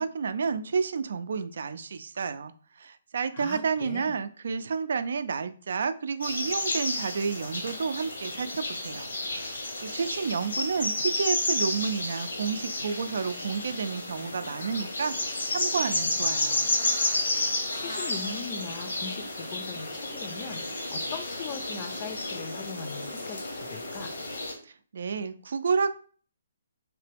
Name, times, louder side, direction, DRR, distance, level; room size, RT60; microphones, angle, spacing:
voice 1, 0.0-9.1 9.5-16.7 24.6-25.9, right 5 dB, 65° right, 11 dB, 0.3 m, -30 dB
voice 2, 3.3-4.1 17.5-24.1, left 5 dB, 30° left, 8 dB, 0.5 m, -40 dB
sound 1, 6.2-24.5, left 2 dB, 85° left, 1.1 m, -31 dB
3.3 x 2.9 x 3.4 m, 0.42 s
hypercardioid pair, 160°, 0 cm